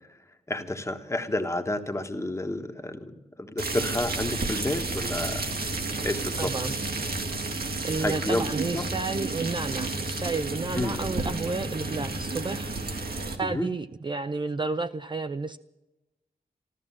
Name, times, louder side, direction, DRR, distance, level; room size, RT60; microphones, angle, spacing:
voice 1, 0.5-5.5 6.0-6.5 8.0-8.5 8.7-8.9 10.7-11.0 13.4-13.7, left 1 dB, 20° left, 7 dB, 1.3 m, -30 dB
sound 1, 3.6-13.4, right 3 dB, 75° right, 2.0 m, -31 dB
voice 2, 6.4-6.7 7.8-12.7 13.4-15.6, right 3 dB, 30° right, 10 dB, 0.5 m, -31 dB
13.5 x 13.5 x 7.3 m, 0.99 s
wide cardioid pair, 100°, 16 cm